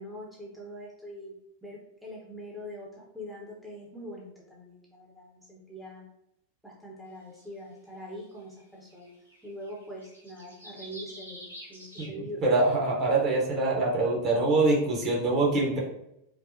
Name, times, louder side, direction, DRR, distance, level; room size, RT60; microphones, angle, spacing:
voice 1, 0.0-1.3 1.6-6.0 6.6-9.2 9.4-12.4, equal, 5° right, -4 dB, 0.7 m, -43 dB
sound 1, 7.4-7.5 8.6-8.7 8.9-12.1, equal, 85° right, 0.9 m, -47 dB
voice 2, 12.4-15.8, right 2 dB, 35° right, -2 dB, 1.0 m, -24 dB
4.4 x 2.1 x 2.6 m, 0.81 s
figure-of-eight pair, 90°, 0 cm